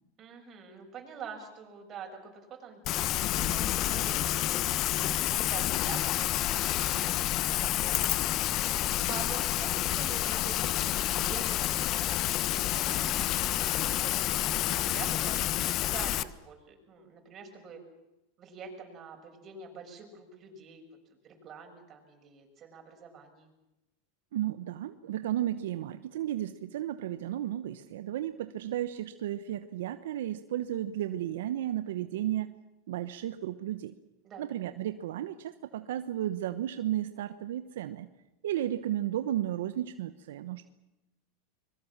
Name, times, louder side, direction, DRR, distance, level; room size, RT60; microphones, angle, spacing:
voice 1, 0.2-8.6 9.1-17.8 18.4-20.8 21.2-23.5 34.2-34.5, right 5 dB, 35° right, 3 dB, 7.2 m, -46 dB
Rain, 2.8-16.2, left 14 dB, 45° left, 1.0 m, -29 dB
voice 2, 24.3-32.5 32.9-33.9 34.4-38.1 38.4-40.7, right 12 dB, 80° right, 11 dB, 1.0 m, -33 dB
25.0 x 22.5 x 7.4 m, 0.94 s
hypercardioid pair, 115°, 0 cm